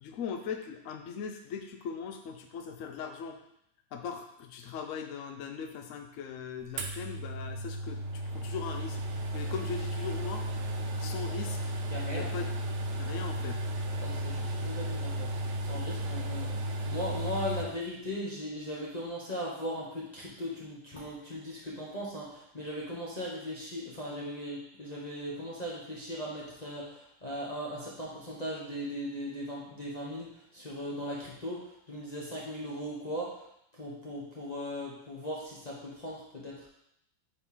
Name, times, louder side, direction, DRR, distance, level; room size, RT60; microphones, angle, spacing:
voice 1, 0.0-3.4 3.9-9.0 9.3-10.4 11.0-11.7 12.1-12.5 13.0-13.6, left 6 dB, 70° left, 5 dB, 0.7 m, -39 dB
sound 1, 6.8-17.7, right 1 dB, 70° right, 1.2 m, -34 dB
voice 2, 11.9-12.3 14.0-15.3 15.6-33.4 33.8-36.6, equal, 35° left, -6 dB, 0.7 m, -38 dB
4.6 x 4.2 x 5.5 m, 0.76 s
omnidirectional pair, 2.1 m